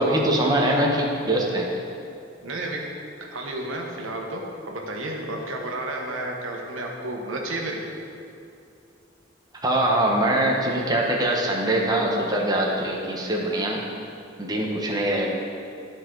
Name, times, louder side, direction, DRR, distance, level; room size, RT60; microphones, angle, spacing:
voice 1, 0.0-1.7 9.6-13.8 14.4-15.3, right 1 dB, 20° right, -1 dB, 0.9 m, -23 dB
voice 2, 2.4-2.8 3.2-7.8, right 1 dB, 90° right, 0 dB, 1.2 m, -31 dB
13.0 x 4.6 x 3.8 m, 2.6 s
head